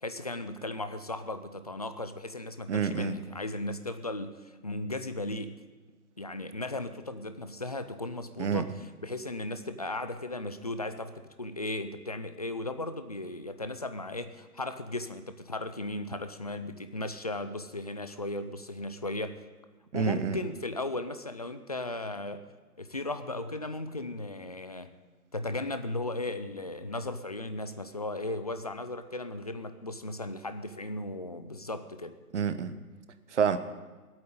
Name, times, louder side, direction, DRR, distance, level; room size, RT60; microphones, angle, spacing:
voice 1, 0.0-5.6 6.2-8.7 9.0-19.4 19.9-22.4 22.8-24.9 25.3-32.2, left 2 dB, 25° left, 10 dB, 0.5 m, -36 dB
voice 2, 2.7-3.1 8.4-8.6 19.9-20.4 32.3-32.7 33.3-33.6, right 6 dB, 50° right, 11 dB, 1.2 m, -28 dB
16.5 x 8.7 x 8.8 m, 1.3 s
hypercardioid pair, 160°, 46 cm